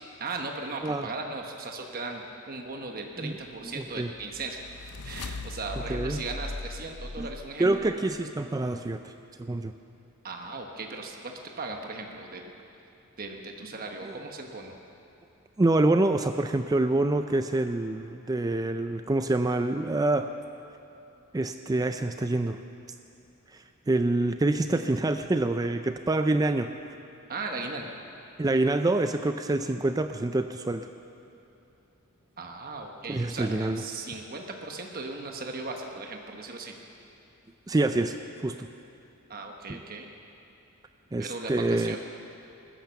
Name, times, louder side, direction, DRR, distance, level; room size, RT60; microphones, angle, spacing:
voice 1, 0.2-4.7 5.0-7.9 10.2-12.5 13.2-14.8 27.3-28.0 32.4-36.8 39.3-40.1 41.2-42.0, right 3 dB, 40° right, 2 dB, 1.1 m, -37 dB
sound 1, 3.7-7.9, left 2 dB, 90° left, 0.7 m, -39 dB
voice 2, 7.6-9.1 9.4-9.7 14.0-14.1 15.6-20.3 21.3-22.6 23.5-26.7 28.4-30.9 33.1-33.8 37.7-38.1 38.4-38.7 41.1-42.0, right 2 dB, 15° right, 8 dB, 0.4 m, -26 dB
20.0 x 10.5 x 6.9 m, 2.7 s
head